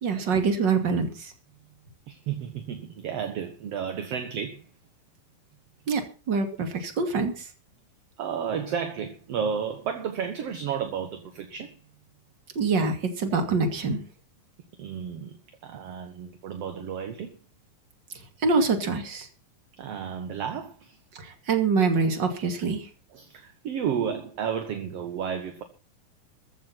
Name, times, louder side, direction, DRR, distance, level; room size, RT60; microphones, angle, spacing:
voice 1, 0.0-1.3 5.9-7.5 12.5-14.0 18.4-19.3 21.1-22.9, right 4 dB, 35° right, 2.8 m, -25 dB
voice 2, 2.1-4.7 8.2-11.8 14.8-17.4 19.8-21.0 23.1-25.6, right 7 dB, 55° right, 2.0 m, -32 dB
14.5 x 11.0 x 5.8 m
omnidirectional pair, 4.0 m